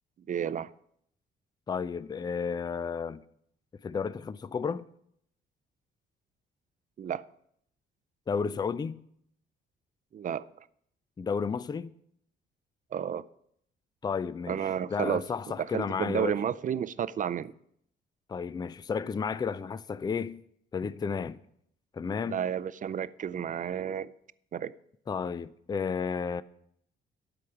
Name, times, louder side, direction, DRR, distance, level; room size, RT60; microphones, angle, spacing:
voice 1, 0.3-0.7 7.0-7.2 10.1-10.5 12.9-13.2 14.5-17.5 22.2-24.1 24.5-24.7, right 8 dB, 40° right, 0.4 m, -32 dB
voice 2, 1.7-3.2 3.8-4.9 8.3-9.0 11.2-11.9 14.0-14.6 14.9-16.4 18.3-20.4 20.7-21.4 21.9-22.5 25.1-26.4, left 6 dB, 20° left, 0.4 m, -32 dB
12.5 x 5.0 x 5.8 m
cardioid pair, 90°, 20 cm